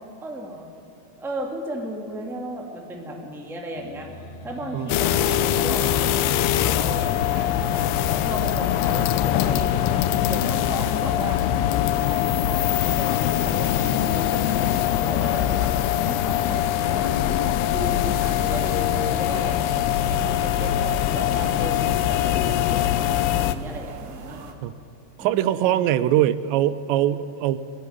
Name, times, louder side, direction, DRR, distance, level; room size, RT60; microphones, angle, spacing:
voice 1, 0.2-0.7 1.2-11.4 11.8-19.7 20.1-24.4 25.2-25.8, right 1 dB, ahead, 0 dB, 1.4 m, -35 dB
sound 1, 3.8-23.4, left 3 dB, 60° left, 2.8 m, -42 dB
sound 2, 4.9-23.6, left 11 dB, 80° left, 2.7 m, -22 dB
sound 3, 18.0-24.5, right 4 dB, 70° right, 3.1 m, -42 dB
voice 2, 25.2-27.6, right 12 dB, 90° right, 15 dB, 2.9 m, -22 dB
21.0 x 16.0 x 9.6 m, 2.6 s
omnidirectional pair, 5.0 m